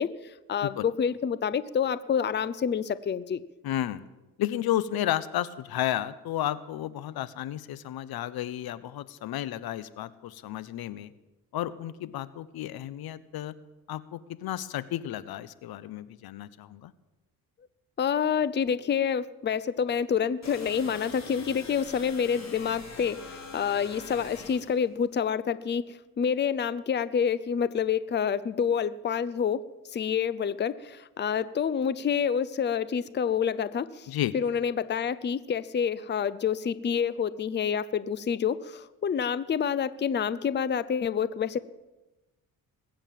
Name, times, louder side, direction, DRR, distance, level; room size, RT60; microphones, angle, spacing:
voice 1, 0.0-3.4 18.0-29.6 29.9-41.6, left 7 dB, 30° left, 17 dB, 0.6 m, -28 dB
voice 2, 3.6-4.0 4.4-11.1 11.5-13.5 13.9-16.9 34.1-34.3, left 12 dB, 80° left, 16 dB, 0.9 m, -32 dB
sound 1, 20.4-24.8, left 4 dB, 45° left, 4.4 m, -44 dB
20.5 x 9.0 x 7.5 m, 1.1 s
cardioid pair, 100°, 37 cm